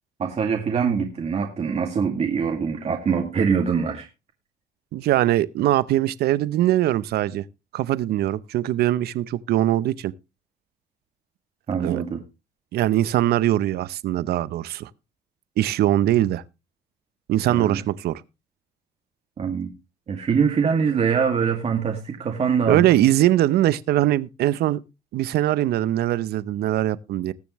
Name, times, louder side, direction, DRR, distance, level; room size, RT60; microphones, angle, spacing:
voice 1, 0.2-4.1 11.7-12.2 17.5-17.8 19.4-19.7 20.1-22.9, right 6 dB, 40° right, 2.1 m, -23 dB
voice 2, 4.9-7.4 7.7-10.1 11.8-12.0 12.7-14.9 15.6-16.4 17.3-18.2 22.7-24.8 25.1-27.3, right 13 dB, 70° right, 0.7 m, -21 dB
20.5 x 7.0 x 3.1 m
cardioid pair, 110°, 17 cm